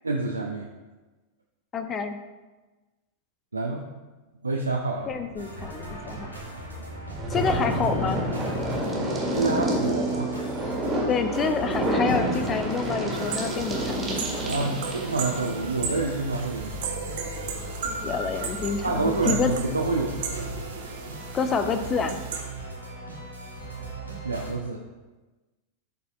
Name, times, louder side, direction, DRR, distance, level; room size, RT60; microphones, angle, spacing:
voice 1, 0.0-0.7 3.5-3.8 4.4-5.1 9.3-10.3 14.4-16.7 18.8-20.5 24.2-24.8, right 3 dB, 80° right, 0 dB, 0.5 m, -28 dB
voice 2, 1.7-2.2 5.1-6.3 7.3-8.2 11.1-14.2 18.0-19.5 21.3-22.2, left 5 dB, 25° left, 8 dB, 0.6 m, -28 dB
sound 1, 5.0-17.7, equal, 15° right, 1.7 m, -29 dB
sound 2, 5.4-24.5, right 1 dB, 90° left, 1.4 m, -38 dB
sound 3, 13.1-22.4, right 5 dB, 55° right, 0.9 m, -36 dB
11.5 x 4.1 x 2.4 m, 1.2 s
figure-of-eight pair, 90°, 0 cm